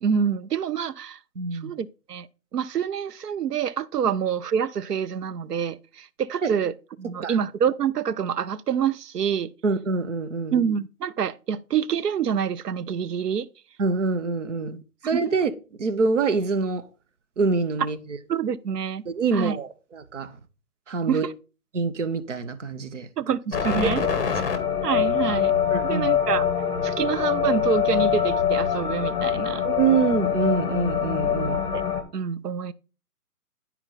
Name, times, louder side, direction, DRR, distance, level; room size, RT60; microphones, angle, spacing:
voice 1, 0.0-1.2 1.5-2.3 2.5-9.5 10.5-13.5 15.1-15.2 18.3-19.0 19.3-19.6 21.1-21.3 23.2-24.0 24.8-25.5 25.8-26.4 26.8-29.6 31.7-31.8 32.1-32.7, right 7 dB, 85° right, 0.7 m, -26 dB
voice 2, 1.4-1.7 6.4-6.5 7.2-7.4 9.6-10.5 13.8-14.8 15.0-15.5 15.8-16.8 17.4-18.0 19.1-20.4 20.9-21.3 21.7-23.1 23.8-23.9 25.7-26.1 29.6-31.7, right 4 dB, 50° right, 0.9 m, -25 dB
sound 1, 23.5-32.0, left 8 dB, 35° left, 1.3 m, -24 dB
10.0 x 4.4 x 4.0 m
hypercardioid pair, 160°, 46 cm